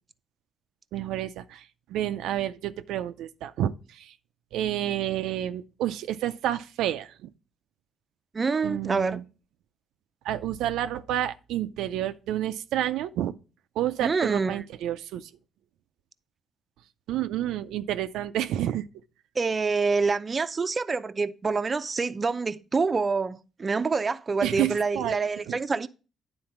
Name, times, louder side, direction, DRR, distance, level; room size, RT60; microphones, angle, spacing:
voice 1, 0.9-4.1 4.5-7.3 8.6-9.2 10.2-13.3 13.8-15.3 17.1-18.8 24.4-25.2 25.5-25.6, right 12 dB, 90° right, 0.4 m, -30 dB
voice 2, 8.3-9.2 14.0-14.6 19.4-25.9, right 4 dB, 30° right, 0.5 m, -26 dB
9.7 x 3.9 x 5.8 m
cardioid pair, 90°, 0 cm